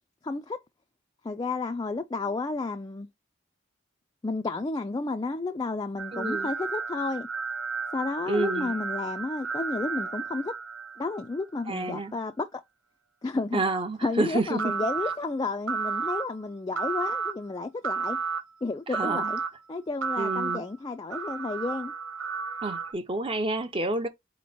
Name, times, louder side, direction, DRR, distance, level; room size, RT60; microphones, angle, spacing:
voice 1, 0.2-0.6 1.2-3.1 4.2-7.3 7.9-10.6 11.0-12.6 13.2-13.6 14.0-18.2 18.6-19.4 19.7-21.9, left 3 dB, 20° left, 0.3 m, -31 dB
sound 1, 6.0-11.3 14.6-15.1 15.7-16.2 16.8-17.3 17.8-18.4 18.9-19.5 20.0-20.6 21.1-22.9, right 5 dB, 70° right, 0.7 m, -32 dB
voice 2, 6.1-6.5 8.3-8.8 11.7-12.1 13.5-14.6 18.9-19.3 20.2-20.6 22.6-24.1, right 2 dB, 25° right, 0.6 m, -29 dB
4.2 x 3.0 x 4.1 m
head